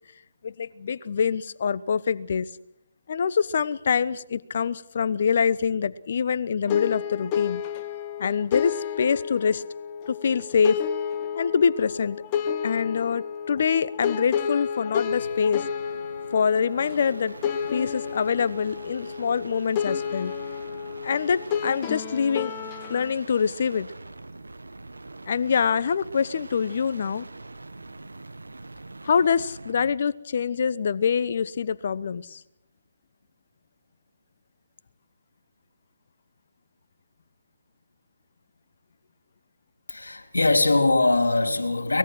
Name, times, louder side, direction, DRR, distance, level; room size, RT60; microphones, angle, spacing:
voice 1, 0.4-2.5 3.1-7.6 8.2-9.6 10.1-10.8 11.3-12.2 12.6-15.7 16.3-17.4 17.7-20.3 21.0-22.5 22.9-23.9 25.3-27.3 29.0-32.4, left 6 dB, 55° left, 17 dB, 1.0 m, -25 dB
sound 1, 6.7-23.1, left 8 dB, 30° left, 1.4 m, -31 dB
sound 2, 15.0-30.0 31.8-32.3, right 2 dB, 85° right, 1.6 m, -43 dB
voice 2, 39.9-42.0, left 2 dB, 85° left, 7 dB, 3.2 m, -21 dB
23.5 x 20.0 x 6.2 m, 0.82 s
figure-of-eight pair, 145°, 0 cm